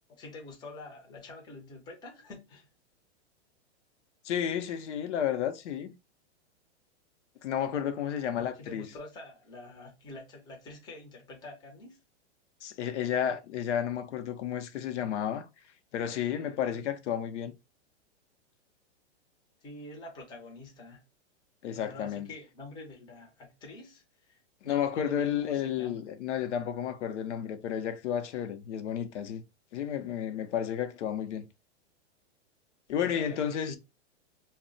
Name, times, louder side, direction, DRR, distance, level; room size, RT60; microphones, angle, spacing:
voice 1, 0.1-2.7 8.5-12.0 16.7-16.9 19.6-21.0 21.7-26.0 33.0-33.8, left 2 dB, 10° left, 0.5 m, -47 dB
voice 2, 4.2-5.9 7.4-8.9 12.6-15.5 15.9-17.5 21.6-22.3 24.7-29.4 29.7-31.5 32.9-33.8, left 9 dB, 80° left, 0.6 m, -32 dB
2.1 x 2.0 x 3.7 m
hypercardioid pair, 140°, 35 cm